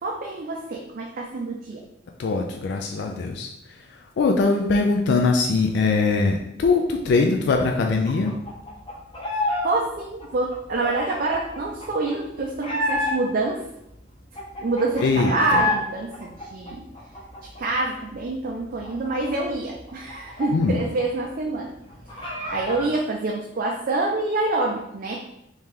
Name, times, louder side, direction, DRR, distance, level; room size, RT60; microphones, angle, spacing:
voice 1, 0.0-1.8 9.3-13.6 14.6-16.9 17.4-21.7 22.1-25.2, right 2 dB, 45° right, -1 dB, 0.4 m, -27 dB
voice 2, 2.2-8.4 15.0-15.6 20.5-20.8, left 3 dB, 60° left, 3 dB, 0.3 m, -22 dB
sound 1, 8.1-9.7 9.9-13.5 13.9-14.0 14.2-15.8 16.1-17.8 18.2-18.3 18.6-21.0 21.3-21.4 21.7-22.9, left 1 dB, 25° left, 0.8 m, -29 dB
3.2 x 2.8 x 3.6 m, 0.79 s
head